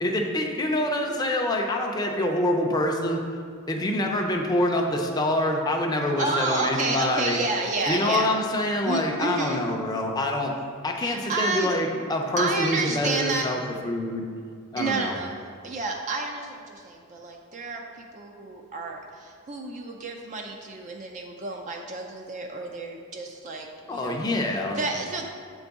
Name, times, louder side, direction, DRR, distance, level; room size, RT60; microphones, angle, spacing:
voice 1, 0.0-3.2 3.7-7.4 7.9-10.5 10.8-14.3 14.7-15.1 23.9-24.8, left 1 dB, 20° left, 1 dB, 0.5 m, -26 dB
voice 2, 6.2-8.3 8.9-9.7 11.0-12.1 12.4-13.5 14.8-24.4 24.7-25.3, right 3 dB, 35° right, 2 dB, 0.4 m, -30 dB
7.4 x 3.9 x 3.5 m, 2.1 s
head